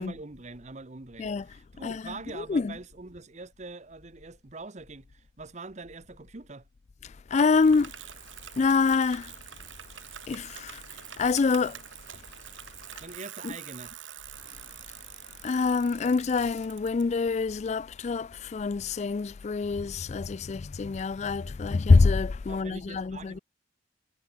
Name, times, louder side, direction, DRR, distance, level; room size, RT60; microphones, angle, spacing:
voice 1, 0.0-6.6 13.0-13.9 22.5-23.4, right 3 dB, 35° right, 1.0 m, -43 dB
voice 2, 1.8-2.7 7.3-7.9 8.6-9.3 10.3-11.8 13.4-13.5 15.4-23.4, left 4 dB, 35° left, 0.3 m, -26 dB
Bicycle, 7.4-17.0, right 11 dB, 85° right, 1.5 m, -46 dB
head